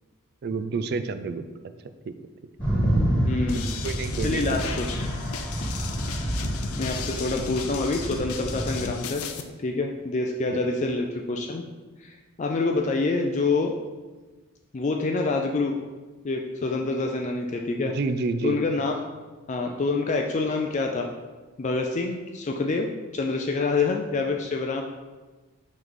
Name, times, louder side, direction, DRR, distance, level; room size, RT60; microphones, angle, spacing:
voice 1, 0.4-1.4 2.0-2.1 3.8-4.7 5.7-5.8 10.5-10.6 17.8-18.6, right 4 dB, 50° right, 10 dB, 0.3 m, -29 dB
sound 1, 2.6-8.9, right 1 dB, 5° left, 1.6 m, -28 dB
voice 2, 3.3-3.7 4.2-5.1 6.8-9.2 9.6-11.6 12.0-13.7 14.7-15.8 16.2-18.0 18.4-18.9 19.5-21.1 21.6-24.8, left 3 dB, 35° left, 2 dB, 0.4 m, -26 dB
sound 2, 3.5-9.4, left 5 dB, 85° left, 0.5 m, -36 dB
5.7 x 3.1 x 5.2 m, 1.3 s
head